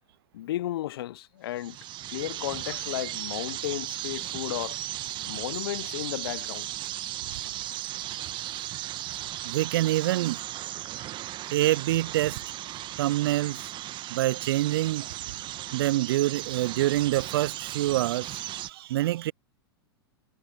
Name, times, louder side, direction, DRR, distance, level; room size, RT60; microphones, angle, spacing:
voice 1, 0.3-1.8 2.1-4.8 5.3-6.7, left 14 dB, 65° left, 0.8 m, -34 dB
sound 1, 1.5-18.7, right 14 dB, 35° right, 1.6 m, -36 dB
voice 2, 9.4-10.4 11.5-12.4 13.0-13.7 14.1-15.1 15.7-19.3, right 15 dB, 65° right, 0.4 m, -26 dB
hypercardioid pair, 100°, 13 cm